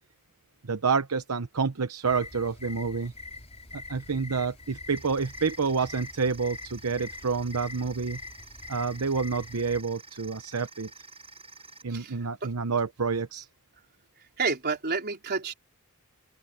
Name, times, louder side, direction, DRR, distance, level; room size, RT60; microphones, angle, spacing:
voice 1, 0.6-3.1 3.7-8.2 8.7-10.9 11.8-13.5, right 5 dB, 75° right, 0.9 m, -28 dB
sound 1, 2.0-9.8, left 3 dB, 30° left, 5.9 m, -44 dB
sound 2, 5.0-11.8, right 4 dB, 25° right, 6.8 m, -49 dB
voice 2, 11.9-12.5 14.4-15.5, right 4 dB, 45° right, 4.1 m, -30 dB
open air
head